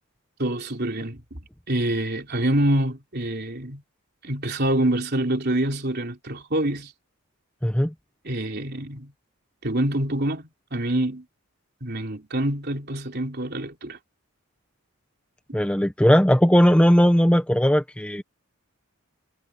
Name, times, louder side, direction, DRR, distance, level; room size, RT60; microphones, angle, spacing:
voice 1, 0.4-1.4 1.7-3.8 4.2-6.9 8.2-9.1 9.6-11.3 11.8-14.0, right 1 dB, 45° right, 3.8 m, -26 dB
voice 2, 7.6-7.9 15.5-18.2, equal, 5° left, 0.9 m, -18 dB
head